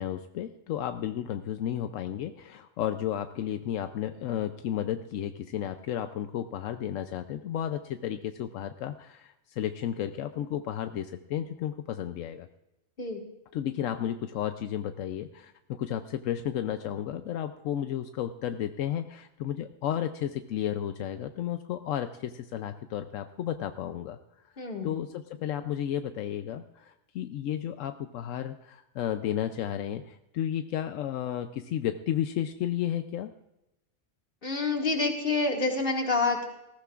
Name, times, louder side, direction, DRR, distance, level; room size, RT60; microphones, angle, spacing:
voice 1, 0.0-12.5 13.5-24.2 24.8-33.3, left 10 dB, 85° left, 8 dB, 1.0 m, -33 dB
voice 2, 24.6-24.9 34.4-36.4, left 3 dB, 45° left, 0 dB, 2.2 m, -27 dB
19.5 x 15.0 x 2.4 m, 0.92 s
omnidirectional pair, 1.3 m